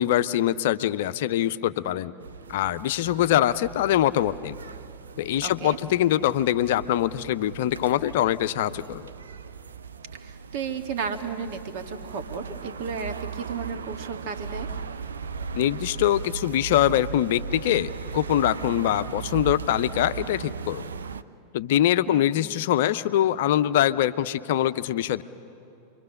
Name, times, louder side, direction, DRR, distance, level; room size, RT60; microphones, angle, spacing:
voice 1, 0.0-2.1 2.5-4.6 5.2-9.1 15.5-20.9 21.5-25.2, left 12 dB, 55° left, 14 dB, 0.6 m, -23 dB
sound 1, 2.2-21.2, right 6 dB, 70° right, 0.6 m, -37 dB
voice 2, 5.4-5.8 10.2-14.7 22.1-22.3, right 5 dB, 45° right, 6 dB, 1.7 m, -33 dB
28.0 x 23.0 x 6.6 m, 2.9 s
figure-of-eight pair, 90°, 0 cm